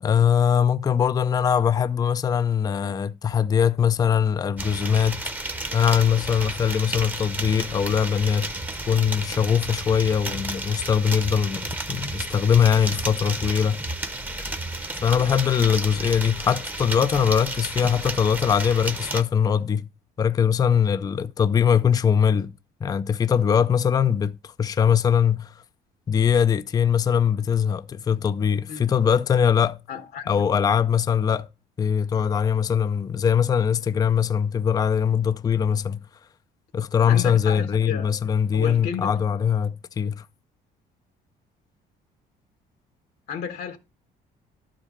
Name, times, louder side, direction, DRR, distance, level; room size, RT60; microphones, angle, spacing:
voice 1, 0.0-5.2 5.7-8.5 8.9-13.8 15.0-19.9 20.2-22.5 22.8-25.5 26.1-29.8 30.3-31.5 31.8-36.0 36.7-40.3, left 7 dB, 20° left, 0.4 m, -21 dB
sound 1, 4.6-19.2, right 2 dB, 10° right, 0.8 m, -32 dB
voice 2, 29.9-30.3 37.1-38.1 38.5-39.2 43.3-43.8, left 7 dB, 75° left, 1.2 m, -32 dB
11.5 x 5.0 x 4.2 m
cardioid pair, 110°, 17 cm